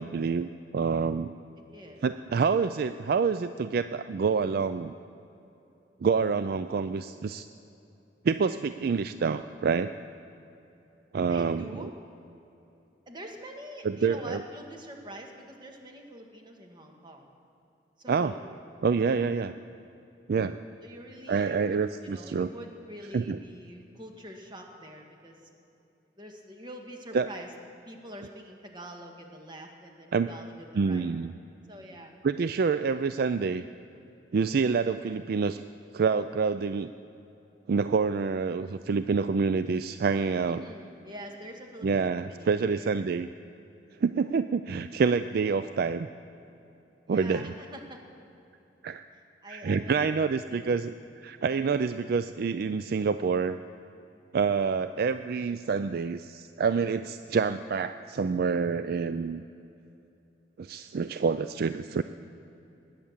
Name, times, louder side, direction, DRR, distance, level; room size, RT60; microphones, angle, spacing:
voice 1, 0.0-1.3 2.0-4.9 6.0-7.5 8.2-9.9 11.1-11.9 13.8-14.4 18.1-18.3 18.8-19.5 20.3-20.6 21.3-22.5 23.1-23.4 27.1-27.3 30.1-30.3 30.7-31.3 32.2-33.6 34.3-35.6 35.9-36.9 37.7-40.6 41.8-43.3 44.0-46.1 47.1-47.5 48.8-49.0 49.5-50.9 51.2-53.6 54.3-59.4 60.6-62.0, right 5 dB, 55° right, 11 dB, 0.4 m, -27 dB
voice 2, 1.6-2.0 11.2-11.9 13.1-17.3 18.0-18.4 20.8-25.5 26.2-27.5 27.8-31.1 31.7-32.2 40.5-43.1 47.1-48.0 49.1-50.8, equal, 25° right, 2 dB, 1.7 m, -45 dB
20.5 x 9.0 x 7.3 m, 2.9 s
head